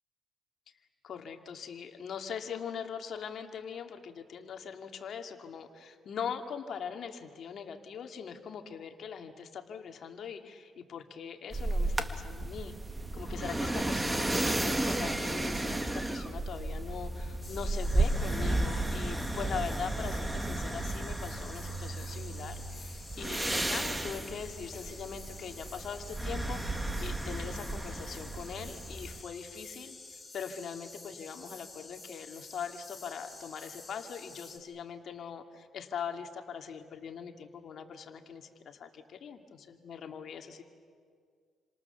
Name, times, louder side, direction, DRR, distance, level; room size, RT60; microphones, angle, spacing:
voice 1, 1.0-12.8 13.1-40.6, left 7 dB, 60° left, 5 dB, 2.4 m, -41 dB
sound 1, 11.5-29.2, right 2 dB, 15° right, 1.9 m, -33 dB
sound 2, 17.4-34.6, left 3 dB, 15° left, 4.4 m, -50 dB
29.0 x 26.5 x 7.1 m, 2.1 s
cardioid pair, 90°, 0 cm